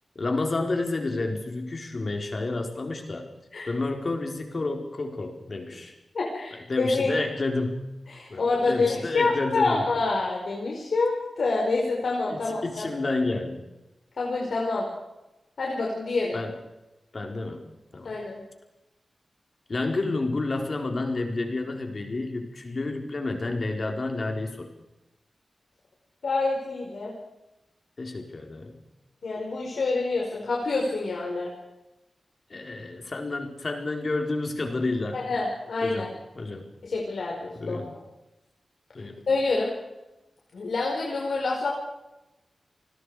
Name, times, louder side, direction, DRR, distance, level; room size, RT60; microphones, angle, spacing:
voice 1, 0.2-3.3 3.7-5.9 6.7-7.9 8.3-9.9 12.3-13.6 16.3-16.6 17.1-17.6 17.9-18.2 19.7-24.7 28.0-28.8 32.5-35.2 35.8-36.7 37.6-37.9 38.9-39.2, left 2 dB, 45° left, 3 dB, 4.2 m, -30 dB
voice 2, 6.1-7.1 8.1-12.8 14.2-14.8 15.6-16.4 18.0-18.4 26.2-27.1 29.2-31.5 35.1-36.1 36.8-37.8 39.3-39.7 40.5-41.7, left 3 dB, 70° left, -2 dB, 5.0 m, -27 dB
29.5 x 20.0 x 4.9 m, 0.98 s
wide cardioid pair, 110°, 0 cm